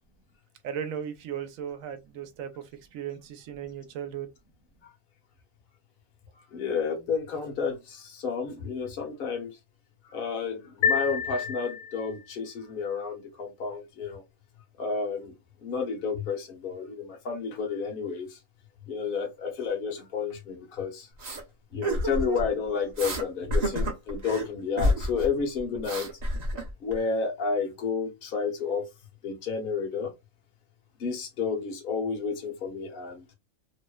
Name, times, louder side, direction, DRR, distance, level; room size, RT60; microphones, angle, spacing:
voice 1, 0.6-4.3, right 8 dB, 90° right, 1.0 m, -36 dB
voice 2, 6.5-9.6 10.0-14.2 14.8-15.3 15.6-18.4 18.9-21.1 21.7-26.1 26.8-28.9 29.2-30.1 31.0-33.2, left 5 dB, 50° left, 0.9 m, -31 dB
sound 1, 10.8-12.3, left 7 dB, 85° left, 1.1 m, -28 dB
sound 2, 21.2-21.4 21.8-22.5 23.0-23.2 23.5-24.5 24.8-25.3 25.6-26.9, equal, 40° right, 0.7 m, -28 dB
2.7 x 2.0 x 2.2 m
omnidirectional pair, 1.4 m